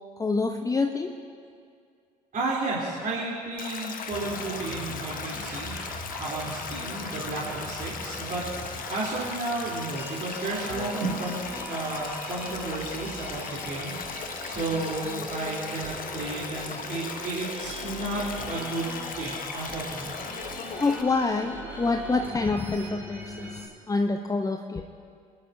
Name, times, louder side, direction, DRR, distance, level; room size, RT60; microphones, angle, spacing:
voice 1, 0.2-1.1 20.8-23.5 23.9-24.8, left 3 dB, 15° left, 4 dB, 0.8 m, -26 dB
voice 2, 2.3-5.7 6.2-20.1, right 2 dB, 45° right, -6 dB, 3.4 m, -33 dB
Stream, 3.6-21.0, left 6 dB, 45° left, 1.2 m, -38 dB
sound 1, 4.1-23.7, right 1 dB, 10° right, 2.8 m, -40 dB
sound 2, 7.5-15.2 15.6-15.7, right 3 dB, 90° right, 2.7 m, -42 dB
24.5 x 11.0 x 2.7 m, 2.2 s
hypercardioid pair, 55°, 20 cm